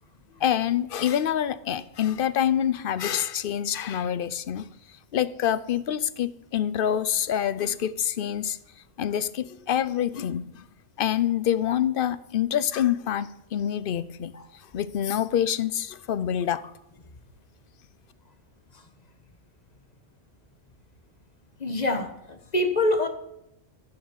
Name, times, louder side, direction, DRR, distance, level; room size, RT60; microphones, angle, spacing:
voice 1, 0.4-4.7 5.1-8.6 9.0-10.6 11.0-14.3 14.7-16.6, left 10 dB, 60° left, 0.8 m, -26 dB
voice 2, 21.6-23.1, left 1 dB, 40° left, 1.3 m, -25 dB
14.5 x 6.3 x 7.1 m
omnidirectional pair, 1.1 m